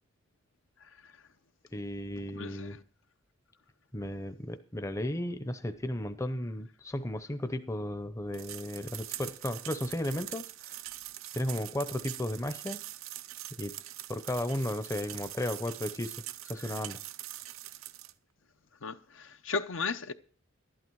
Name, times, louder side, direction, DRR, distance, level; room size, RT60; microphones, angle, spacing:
voice 1, 1.7-2.8 3.9-10.8 11.3-12.8 13.6-13.8 14.1-17.0, left 1 dB, 15° left, 0.6 m, -35 dB
voice 2, 2.3-2.8 18.8-20.1, left 4 dB, 75° left, 0.7 m, -35 dB
sound 1, 8.3-18.1, right 14 dB, 85° right, 0.6 m, -43 dB
12.0 x 11.0 x 4.6 m
head